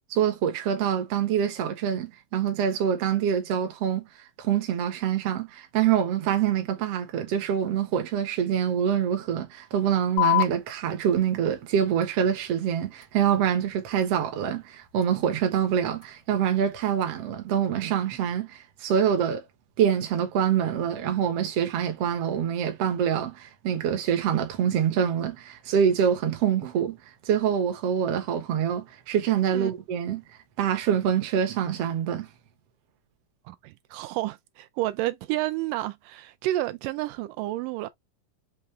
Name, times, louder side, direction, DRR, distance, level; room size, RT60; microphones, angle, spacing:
voice 1, 0.2-4.1 4.4-19.4 19.8-27.0 27.3-30.2 30.6-32.3, right 8 dB, 65° right, 1.7 m, -25 dB
sound 1, 10.2-17.2, left 21 dB, 80° left, 1.4 m, -34 dB
voice 2, 33.5-37.9, right 16 dB, 85° right, 2.1 m, -30 dB
5.7 x 2.4 x 3.2 m
omnidirectional pair, 3.7 m